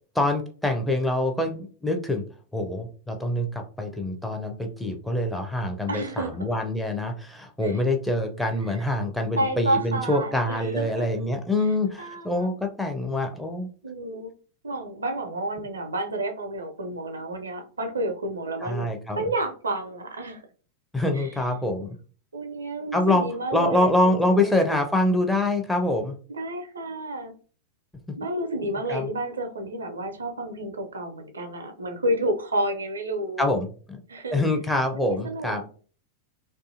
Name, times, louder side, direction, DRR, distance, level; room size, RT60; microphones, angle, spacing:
voice 1, 0.1-2.2 2.5-13.7 18.6-19.2 20.9-22.0 22.9-23.3 23.5-26.2 28.9-29.1 33.4-34.0 34.3-35.6, left 1 dB, 5° left, 3 dB, 0.5 m, -25 dB
voice 2, 5.9-6.6 7.6-7.8 8.8-8.9 9.4-11.1 12.0-12.5 13.8-14.3 14.6-20.4 21.1-21.3 22.3-24.8 26.3-27.3 28.2-33.5 34.1-34.5 34.9-35.6, right 1 dB, 75° right, 6 dB, 0.4 m, -30 dB
2.6 x 2.3 x 2.5 m, 0.40 s
figure-of-eight pair, 90°, 0 cm